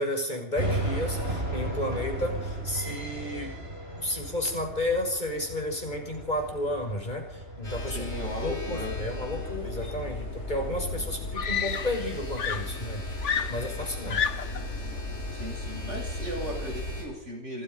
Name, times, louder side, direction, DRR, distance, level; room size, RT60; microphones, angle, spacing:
voice 1, 0.0-3.5 4.0-8.0 8.4-14.3, left 1 dB, 40° left, 3 dB, 6.0 m, -32 dB
sound 1, 0.6-16.9, right 1 dB, 55° right, 6.1 m, -38 dB
sound 2, 7.6-17.0, left 2 dB, 70° left, 8.4 m, -35 dB
voice 2, 7.9-8.9 15.3-17.6, equal, 80° right, 0 dB, 8.3 m, -36 dB
Screaming, 10.5-10.6 11.4-12.1 12.4-14.7 15.7-15.9, left 7 dB, 85° left, 1.4 m, -31 dB
27.5 x 20.5 x 5.5 m, 0.70 s
omnidirectional pair, 1.2 m